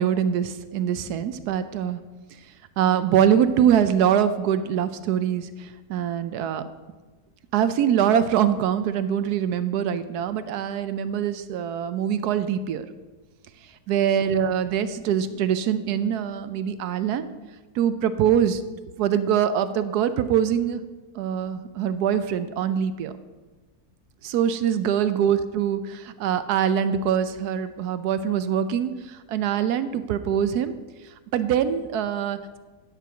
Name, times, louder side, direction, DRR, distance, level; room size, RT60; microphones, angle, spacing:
voice 1, 0.0-2.0 2.8-6.6 7.5-12.9 13.9-17.3 17.8-18.6 19.0-20.8 21.2-23.1 24.2-30.7 31.3-32.6, right 9 dB, 75° right, 12 dB, 1.1 m, -23 dB
10.0 x 4.6 x 6.9 m, 1.2 s
omnidirectional pair, 1.8 m